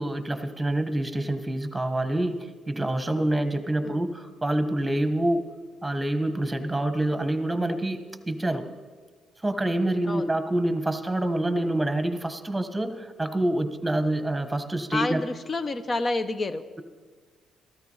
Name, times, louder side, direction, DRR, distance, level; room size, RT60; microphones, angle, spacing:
voice 1, 0.0-5.4 5.8-8.7 9.4-15.2, right 1 dB, 10° right, 9 dB, 1.2 m, -27 dB
voice 2, 14.9-16.8, left 3 dB, 35° left, 11 dB, 0.9 m, -29 dB
14.0 x 13.0 x 5.6 m, 1.5 s
cardioid pair, 90°, 0 cm